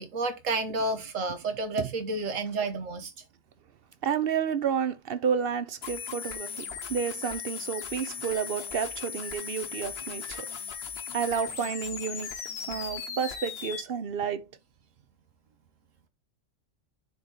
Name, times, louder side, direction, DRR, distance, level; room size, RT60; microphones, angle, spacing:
voice 1, 0.0-3.1, right 3 dB, 80° right, 1.5 m, -30 dB
voice 2, 4.0-10.5 11.1-12.3 12.7-14.5, right 7 dB, 55° right, 0.8 m, -30 dB
sound 1, 5.8-13.8, left 7 dB, 55° left, 1.1 m, -38 dB
10.0 x 3.9 x 2.9 m
omnidirectional pair, 1.3 m